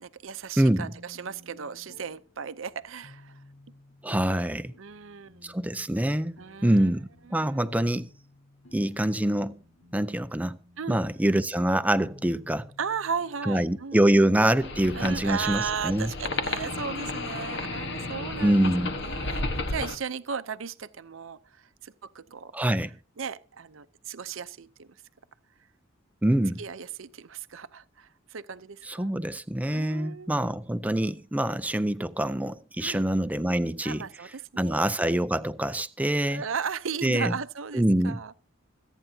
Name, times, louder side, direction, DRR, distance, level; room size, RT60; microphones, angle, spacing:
voice 1, 0.0-3.4 4.8-5.5 6.4-6.9 7.3-7.7 10.8-11.0 12.8-14.2 14.9-22.5 23.2-24.9 26.6-29.1 29.7-30.5 32.8-33.1 33.8-34.9 36.3-38.4, right 6 dB, 70° right, 0.6 m, -36 dB
voice 2, 0.6-0.9 4.0-4.7 5.4-8.1 8.7-9.6 9.9-10.6 10.9-12.7 13.4-16.1 18.4-18.9 22.5-22.9 26.2-26.6 28.9-34.0 34.6-36.4 37.0-37.3 37.7-38.2, right 1 dB, 5° right, 0.5 m, -25 dB
sound 1, 0.8-18.8, left 1 dB, 80° left, 3.3 m, -55 dB
sound 2, 14.6-20.0, left 2 dB, 60° left, 1.3 m, -33 dB
25.5 x 9.0 x 2.8 m
head